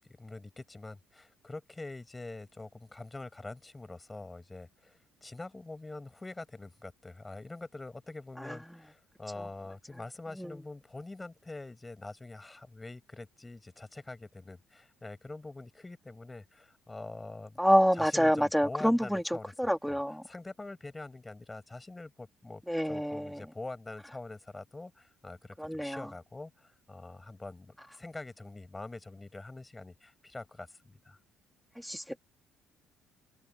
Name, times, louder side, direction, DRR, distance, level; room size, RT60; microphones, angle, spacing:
voice 1, 0.2-17.6 17.9-19.5 19.9-20.0 20.3-22.6 22.9-31.2, left 2 dB, 20° left, 7.0 m, -45 dB
voice 2, 17.6-19.2 19.6-20.2 22.7-23.4 25.6-26.0 31.8-32.2, equal, ahead, 2.8 m, -27 dB
open air
hypercardioid pair, 50°, 0 cm